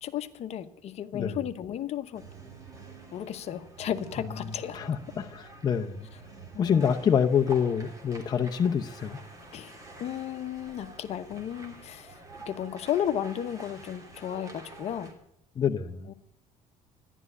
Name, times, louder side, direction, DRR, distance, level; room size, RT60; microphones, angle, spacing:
voice 1, 0.0-2.2 3.1-4.8 6.5-6.9 9.5-12.2 12.5-15.1 16.1-16.2, left 10 dB, 50° left, 10 dB, 1.0 m, -34 dB
sound 1, 2.1-15.1, right 3 dB, 25° right, 3.1 m, -47 dB
voice 2, 4.7-6.1 6.6-9.2 15.6-16.1, left 7 dB, 30° left, 4 dB, 0.8 m, -26 dB
14.0 x 11.0 x 8.2 m, 0.72 s
cardioid pair, 145°, 14 cm